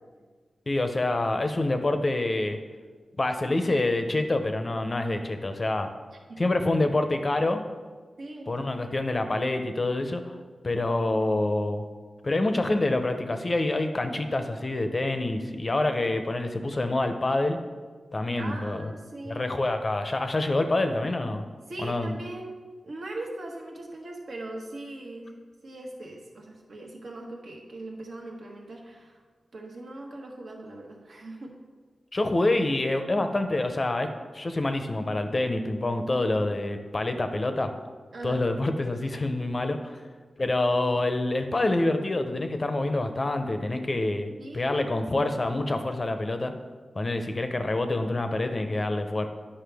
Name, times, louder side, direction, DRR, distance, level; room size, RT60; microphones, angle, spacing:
voice 1, 0.7-2.6 3.2-5.9 6.4-7.6 8.5-10.4 10.6-11.8 12.2-17.6 18.1-18.9 19.3-21.4 21.8-22.2 32.1-37.7 38.2-40.0 40.4-44.3 44.5-46.5 47.0-49.3, left 2 dB, 35° left, 7 dB, 0.6 m, -26 dB
voice 2, 8.2-8.6 18.4-19.5 21.7-22.6 22.8-25.4 25.6-29.2 29.5-31.5 38.1-38.4 44.4-44.9, right 2 dB, 70° right, 0 dB, 1.3 m, -40 dB
9.4 x 5.5 x 3.4 m, 1.4 s
wide cardioid pair, 110°, 0 cm